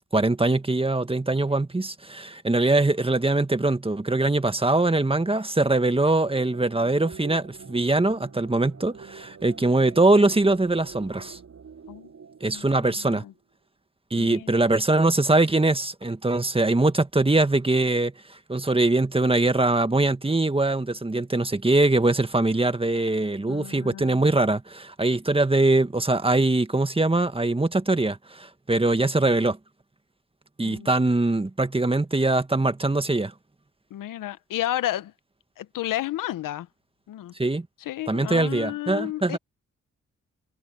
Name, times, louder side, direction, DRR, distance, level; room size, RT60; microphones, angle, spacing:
voice 1, 0.1-11.4 12.4-13.2 14.1-29.6 30.6-33.3 37.4-37.7 38.1-39.4, right 2 dB, 15° right, 1.8 m, -22 dB
sound 1, 5.9-13.4, right 6 dB, 55° right, 3.3 m, -46 dB
voice 2, 12.5-13.3 14.1-14.6 23.5-24.3 30.6-30.9 33.9-35.1 35.6-36.7 37.1-37.3 37.8-39.4, left 13 dB, 80° left, 1.0 m, -32 dB
supercardioid pair, 55°, 32 cm